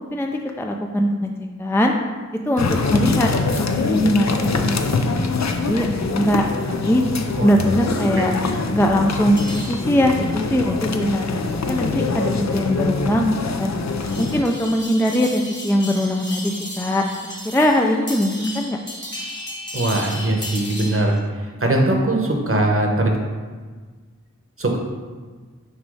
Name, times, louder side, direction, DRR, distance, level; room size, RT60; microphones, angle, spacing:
voice 1, 0.1-1.3 1.6-1.9 2.5-3.3 3.7-7.0 7.4-8.3 8.7-11.3 11.6-13.7 14.2-17.0 17.4-18.8, equal, 10° left, 2 dB, 0.4 m, -21 dB
sound 1, 2.6-14.4, left 4 dB, 60° left, 0.5 m, -24 dB
sound 2, 9.4-21.2, left 1 dB, 35° left, 1.3 m, -36 dB
voice 2, 19.7-23.2 24.6-24.8, right 1 dB, 45° right, 1 dB, 1.0 m, -21 dB
6.3 x 3.1 x 5.4 m, 1.4 s
wide cardioid pair, 45°, 30 cm